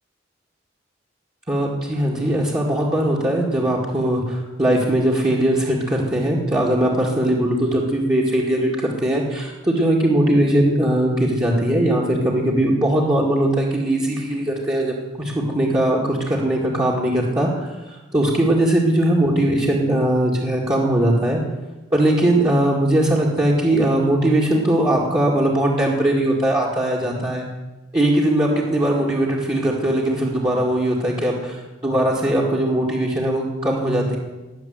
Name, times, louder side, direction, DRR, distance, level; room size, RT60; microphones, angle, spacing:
voice 1, 1.5-8.7 9.0-21.4 21.9-27.5 27.9-34.2, right 1 dB, 20° right, -5 dB, 2.2 m, -20 dB
21.0 x 7.5 x 8.0 m, 1.1 s
head